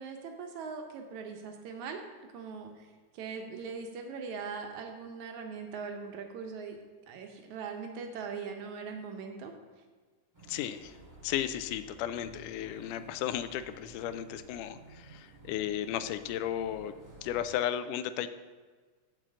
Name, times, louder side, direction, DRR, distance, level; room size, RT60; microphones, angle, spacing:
voice 1, 0.0-2.0 2.3-2.9 3.1-6.8 7.1-9.5, right 5 dB, 70° right, 4 dB, 2.2 m, -40 dB
sound 1, 10.3-17.4, right 2 dB, 30° right, 0.3 m, -53 dB
voice 2, 10.5-11.0 11.2-16.9 17.2-18.3, left 11 dB, 85° left, 12 dB, 2.1 m, -34 dB
7.6 x 5.7 x 7.5 m, 1.4 s
omnidirectional pair, 3.6 m